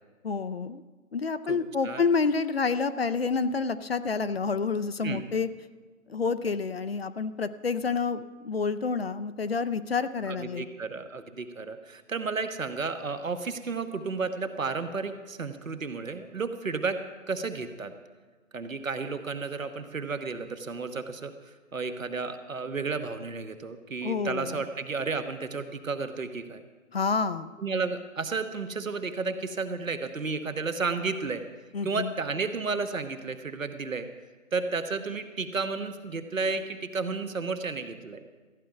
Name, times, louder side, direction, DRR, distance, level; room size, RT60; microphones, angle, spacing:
voice 1, 0.2-0.8 1.1-5.5 6.1-10.7 24.0-24.6 26.9-27.5 31.7-32.1, left 4 dB, 45° left, 12 dB, 0.5 m, -28 dB
voice 2, 10.3-17.0 17.3-17.9 18.5-21.3 21.7-26.6 27.6-31.4 31.8-34.1 34.5-38.2, right 4 dB, 70° right, 8 dB, 1.3 m, -32 dB
14.5 x 9.3 x 5.7 m, 1.3 s
figure-of-eight pair, 145°, 41 cm